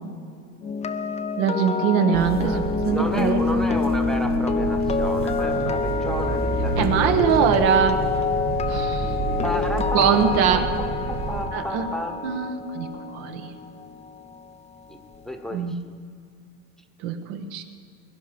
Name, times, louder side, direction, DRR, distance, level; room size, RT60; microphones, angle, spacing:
sound 1, 0.6-14.7 14.9-15.2, left 4 dB, 15° left, 0.6 m, -27 dB
voice 1, 1.4-2.6 2.8-3.6 6.8-8.1 8.7-9.1 9.9-10.6 11.5-11.9 12.2-12.9 13.1-13.5 15.5-15.7 17.0-17.6, right 7 dB, 70° right, 6 dB, 1.6 m, -22 dB
sound 2, 2.1-11.4, right 3 dB, 40° right, 2.4 m, -29 dB
voice 2, 2.4-7.2 9.4-12.2 14.9-15.0 15.2-15.9, equal, ahead, 6 dB, 1.1 m, -33 dB
22.0 x 11.0 x 5.3 m, 2.5 s
supercardioid pair, 130°, 41 cm